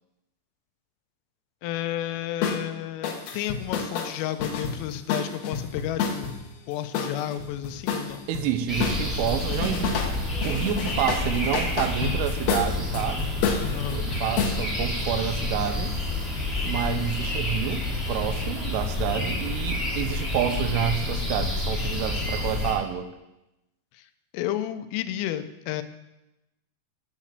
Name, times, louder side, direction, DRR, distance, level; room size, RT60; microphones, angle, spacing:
voice 1, 1.6-6.3 6.7-8.2 13.7-14.0 24.3-25.8, left 12 dB, 90° left, 11 dB, 3.3 m, -31 dB
sound 1, 2.4-2.6 3.0-6.4 6.9-8.5 8.8-10.1 10.4-14.6, left 6 dB, 70° left, 2.5 m, -29 dB
voice 2, 8.3-10.0 10.4-13.3 13.9-16.0 16.6-23.1, right 10 dB, 85° right, 10 dB, 3.1 m, -29 dB
sound 2, 8.7-22.7, left 2 dB, ahead, 2.3 m, -29 dB
13.0 x 5.0 x 7.3 m, 0.95 s
omnidirectional pair, 5.7 m